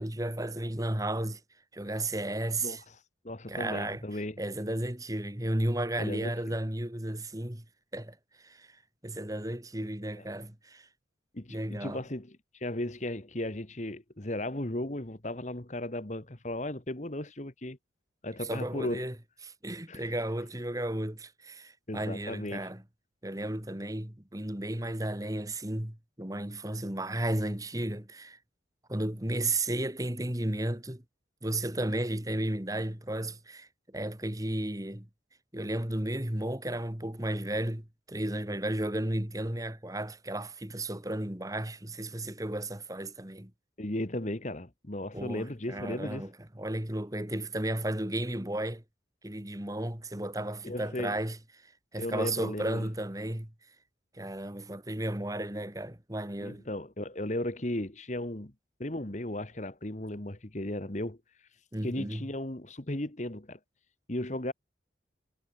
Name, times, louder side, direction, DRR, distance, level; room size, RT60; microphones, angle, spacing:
voice 1, 0.0-1.4 1.7-2.8 3.5-4.0 4.4-7.6 7.9-10.9 11.5-12.0 18.4-19.1 19.4-22.8 23.2-28.4 28.9-31.0 31.4-35.1 35.5-43.5 45.1-48.8 49.2-53.5 54.1-56.6 61.7-62.3, right 1 dB, 20° right, 1.7 m, -34 dB
voice 2, 3.2-4.4 6.0-6.6 11.3-17.8 18.2-19.1 19.9-20.0 21.9-22.7 43.8-46.3 50.6-51.2 52.0-52.9 56.4-58.5 58.8-61.2 61.8-63.6 64.1-64.5, left 1 dB, 40° left, 1.6 m, -35 dB
head